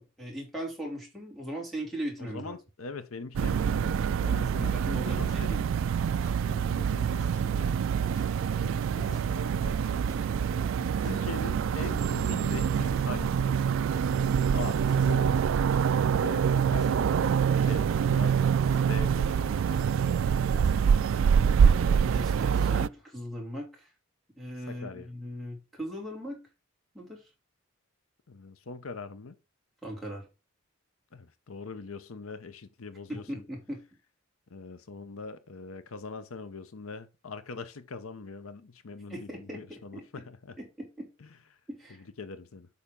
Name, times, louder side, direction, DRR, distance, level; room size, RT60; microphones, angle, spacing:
voice 1, 0.0-2.5 4.6-5.6 21.8-23.9 24.4-26.4 26.9-27.3 29.8-30.3 33.1-33.8 39.1-40.2 40.6-41.1 41.7-42.0, equal, ahead, 2.8 m, -39 dB
voice 2, 2.2-5.6 6.4-7.7 8.4-9.8 11.0-13.7 14.5-15.4 16.1-17.1 17.5-18.4 18.8-19.5 24.7-25.1 28.3-29.3 31.1-33.2 34.5-40.5 42.2-42.7, left 4 dB, 90° left, 0.8 m, -42 dB
sound 1, 3.3-22.9, right 7 dB, 70° right, 0.3 m, -26 dB
sound 2, 4.8-21.7, right 2 dB, 15° left, 3.1 m, -46 dB
8.5 x 5.7 x 3.7 m
head